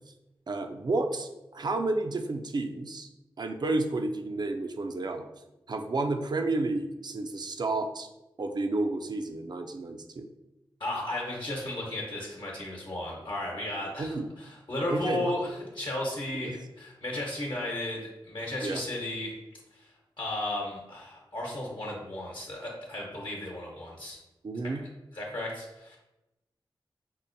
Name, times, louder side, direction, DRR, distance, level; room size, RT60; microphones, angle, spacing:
voice 1, 0.5-3.1 3.4-5.3 5.7-8.1 8.4-10.3 14.0-14.3 14.9-15.3 16.4-16.5 18.6-18.8 24.4-24.8, right 2 dB, 50° right, 6 dB, 0.4 m, -31 dB
voice 2, 10.8-19.3 19.7-19.9 20.2-24.2 24.6-24.7 25.1-26.0, left 1 dB, 60° left, -3 dB, 1.0 m, -34 dB
5.3 x 2.1 x 2.6 m, 0.96 s
cardioid pair, 45°, 9 cm